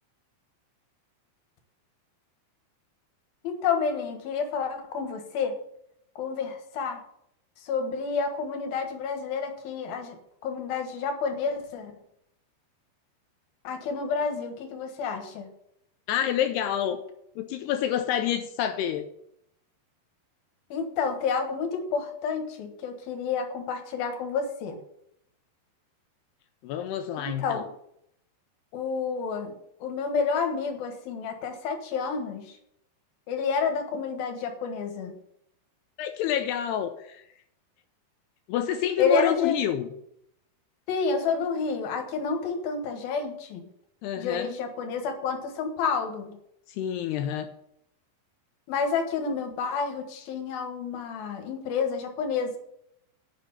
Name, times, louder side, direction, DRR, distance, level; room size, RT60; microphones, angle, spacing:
voice 1, 3.4-5.5 6.2-7.0 7.6-10.2 10.4-11.9 13.6-15.5 20.7-24.8 27.2-27.7 28.7-29.5 29.8-32.5 33.3-35.1 39.0-39.6 40.9-43.7 44.2-46.3 48.7-52.6, left 5 dB, 65° left, 5 dB, 2.9 m, -29 dB
voice 2, 16.1-17.0 17.4-19.1 26.6-27.6 36.0-37.3 38.5-39.9 44.0-44.5 46.7-47.5, left 10 dB, 85° left, 8 dB, 2.5 m, -28 dB
9.3 x 6.4 x 8.1 m, 0.74 s
omnidirectional pair, 5.2 m